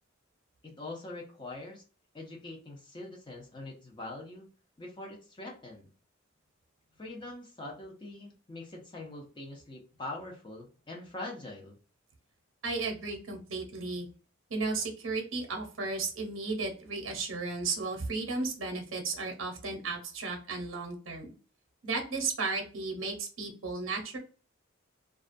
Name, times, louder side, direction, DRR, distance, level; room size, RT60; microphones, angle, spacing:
voice 1, 0.6-1.8 2.1-4.5 4.8-5.9 7.0-11.8, left 2 dB, 25° left, 0 dB, 0.6 m, -43 dB
voice 2, 12.6-14.1 14.5-21.3 21.8-24.2, right 3 dB, 75° right, 3 dB, 0.7 m, -34 dB
2.4 x 2.2 x 2.5 m, 0.36 s
head